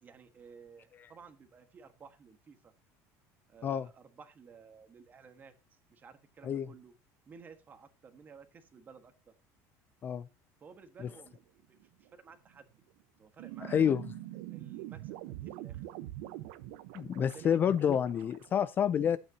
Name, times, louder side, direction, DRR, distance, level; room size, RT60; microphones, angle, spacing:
voice 1, 0.0-2.7 3.5-6.9 7.3-9.1 10.6-11.8 12.1-12.7 13.2-13.8 14.5-15.8 17.1-17.6 18.1-18.3, right 5 dB, 25° right, 1.5 m, -55 dB
sound 1, 11.1-11.4 11.8-12.1 12.5-12.6 13.0-13.1 13.4-18.6, right 15 dB, 90° right, 0.9 m, -44 dB
voice 2, 13.7-14.0 16.9-19.2, left 8 dB, 25° left, 0.4 m, -28 dB
12.5 x 8.7 x 2.8 m
cardioid pair, 165°, 7 cm